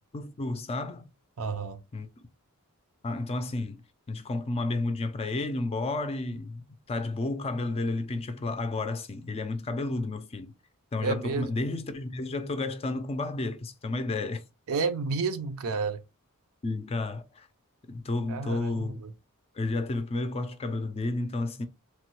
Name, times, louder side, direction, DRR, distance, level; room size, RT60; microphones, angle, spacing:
voice 1, 0.1-1.1 1.9-2.1 3.0-10.5 10.9-14.4 16.6-17.5 17.9-19.0 19.5-21.7, left 2 dB, 25° left, 0.4 m, -31 dB
voice 2, 1.4-1.8 11.0-11.5 14.7-16.0 18.3-19.1, right 4 dB, 70° right, 0.5 m, -30 dB
3.1 x 2.1 x 3.0 m
head